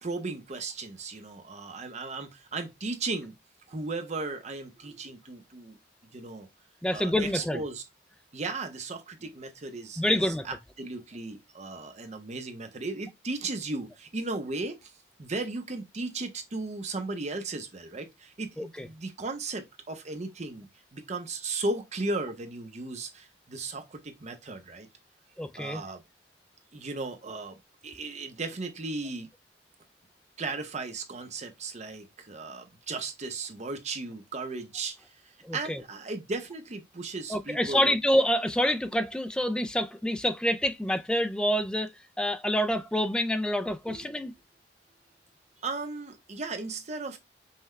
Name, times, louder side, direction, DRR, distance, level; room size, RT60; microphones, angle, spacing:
voice 1, 0.0-3.4 3.7-5.8 6.1-6.5 6.9-7.8 8.3-14.9 15.2-24.9 25.5-26.0 26.7-27.6 27.8-29.3 30.4-35.1 35.5-37.9 43.9-44.1 45.6-47.2, right 3 dB, 40° right, 0.7 m, -36 dB
voice 2, 6.8-7.6 10.0-10.5 18.6-18.9 25.4-25.8 35.4-35.8 37.3-44.3, equal, 5° left, 0.3 m, -27 dB
5.6 x 2.2 x 3.1 m
head